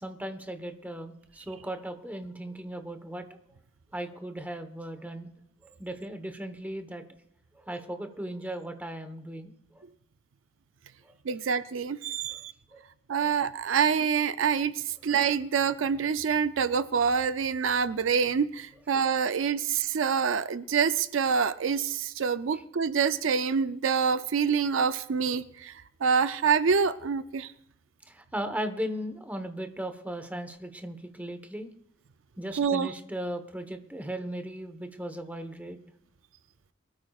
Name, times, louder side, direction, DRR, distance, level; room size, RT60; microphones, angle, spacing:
voice 1, 0.0-3.2 3.9-5.3 5.8-7.0 7.6-9.5 12.7-12.8 13.2-13.3 28.1-31.7 32.4-35.8, right 1 dB, 10° right, 7 dB, 1.1 m, -37 dB
voice 2, 11.3-12.5 13.1-25.7 26.0-27.5 32.5-32.9, right 6 dB, 75° right, 13 dB, 0.5 m, -26 dB
24.0 x 13.0 x 2.4 m, 0.76 s
head